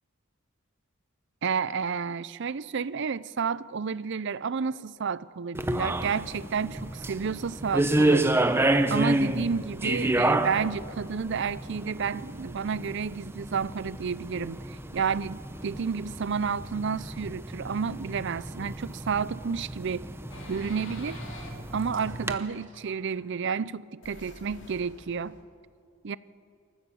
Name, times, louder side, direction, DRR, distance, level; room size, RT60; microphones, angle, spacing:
voice 1, 1.4-8.5 8.9-20.1 20.5-21.2 21.7-25.4 26.0-26.2, right 6 dB, 55° right, 0.5 m, -31 dB
sound 1, 5.5-22.3, right 1 dB, 10° right, 0.7 m, -30 dB
sound 2, 20.3-23.4 24.0-25.4, left 1 dB, 60° left, 3.0 m, -46 dB
27.0 x 14.5 x 7.1 m
head